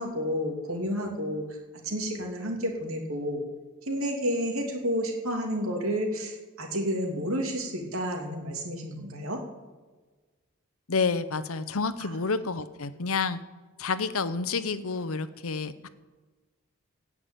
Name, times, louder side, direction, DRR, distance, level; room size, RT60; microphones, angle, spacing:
voice 1, 0.0-1.4 1.8-3.4 3.9-9.4, equal, 75° right, 2 dB, 2.7 m, -30 dB
voice 2, 10.9-13.4 13.8-15.9, left 4 dB, 80° left, 13 dB, 0.8 m, -29 dB
17.0 x 6.0 x 9.0 m, 1.3 s
head